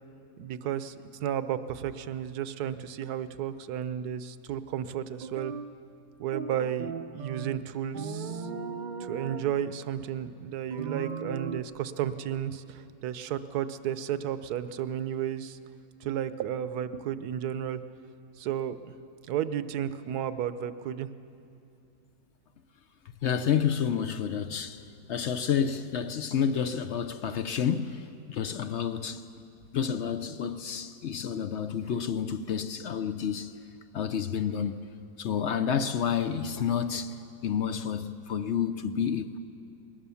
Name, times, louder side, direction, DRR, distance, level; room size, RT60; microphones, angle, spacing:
voice 1, 0.4-5.5 6.2-8.5 9.0-15.6 16.0-17.8 18.4-18.9 19.3-21.1, right 10 dB, 70° right, 1.2 m, -33 dB
sound 1, 5.2-5.7 6.3-7.6 7.9-9.5 10.7-11.6, right 5 dB, 45° right, 0.6 m, -37 dB
voice 2, 23.2-29.2 29.7-33.6 33.9-34.8 35.2-37.2 37.4-39.4, left 8 dB, 65° left, 0.7 m, -30 dB
21.5 x 19.0 x 7.0 m
omnidirectional pair, 1.8 m